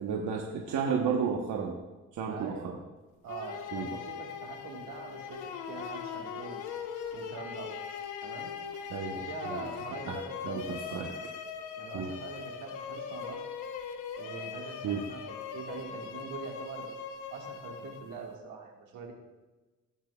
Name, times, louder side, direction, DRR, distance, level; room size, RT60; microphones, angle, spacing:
voice 1, 0.0-1.8 2.1-2.8 3.7-3.9 8.9-9.6 10.1-10.2 10.4-11.1 11.5-12.1 14.8-15.0, right 6 dB, 75° right, 0 dB, 1.2 m, -33 dB
voice 2, 2.3-2.8 3.2-6.6 7.1-7.8 8.2-8.5 9.1-11.0 11.8-13.4 14.2-16.9 17.3-19.1, right 5 dB, 90° right, 1 dB, 1.9 m, -43 dB
sound 1, 3.3-18.4, left 7 dB, 80° left, 1.0 m, -40 dB
16.0 x 9.0 x 2.4 m, 1.2 s
cardioid pair, 90°, 30 cm